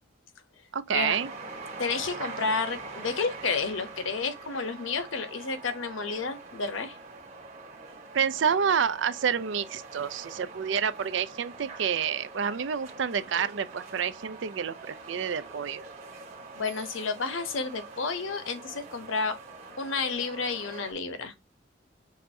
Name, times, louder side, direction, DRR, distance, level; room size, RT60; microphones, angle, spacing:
voice 1, 0.7-1.3 8.1-15.9, right 7 dB, 65° right, 0.4 m, -28 dB
sound 1, 1.1-20.9, right 3 dB, 35° right, 1.6 m, -44 dB
voice 2, 1.8-7.0 16.5-19.4 19.8-21.3, left 4 dB, 75° left, 0.9 m, -31 dB
6.5 x 2.6 x 2.7 m
head